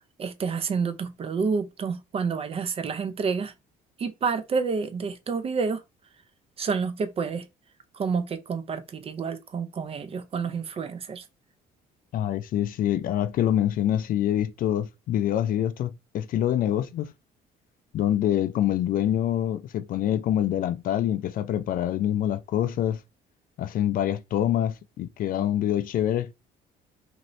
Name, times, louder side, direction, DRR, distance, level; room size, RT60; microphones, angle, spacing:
voice 1, 0.2-3.5 4.0-5.8 6.6-7.5 7.9-11.2, right 5 dB, 35° right, 0.5 m, -29 dB
voice 2, 12.1-17.1 17.9-23.0 23.6-26.3, left 11 dB, 55° left, 0.4 m, -25 dB
2.6 x 2.6 x 3.0 m
cardioid pair, 110°, 17 cm